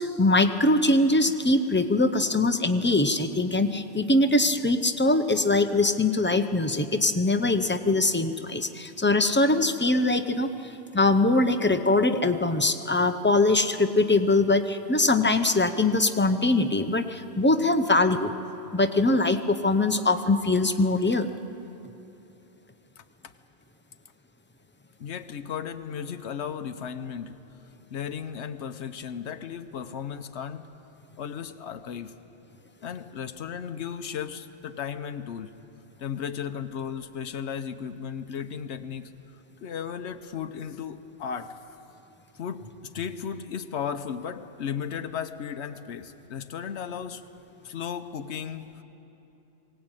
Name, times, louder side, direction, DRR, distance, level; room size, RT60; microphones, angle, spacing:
voice 1, 0.0-18.3 18.7-21.3, left 2 dB, 15° left, 8 dB, 0.6 m, -22 dB
voice 2, 23.0-23.3 25.0-27.4 27.9-30.6 31.2-32.1 32.8-35.6 36.0-39.1 39.6-41.6 42.3-47.2 47.6-48.8, left 7 dB, 90° left, 9 dB, 1.1 m, -35 dB
21.0 x 17.5 x 9.0 m, 3.0 s
omnidirectional pair, 1.1 m